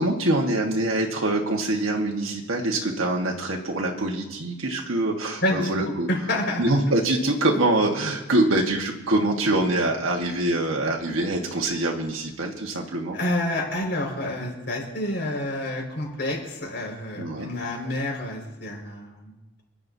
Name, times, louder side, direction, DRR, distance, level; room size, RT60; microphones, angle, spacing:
voice 1, 0.0-6.1 6.6-13.2 17.2-17.5, right 2 dB, 85° right, 0 dB, 1.5 m, -24 dB
voice 2, 5.4-5.7 6.1-6.6 13.1-19.3, left 1 dB, 55° left, -1 dB, 5.0 m, -28 dB
28.0 x 11.0 x 2.7 m, 1.0 s
head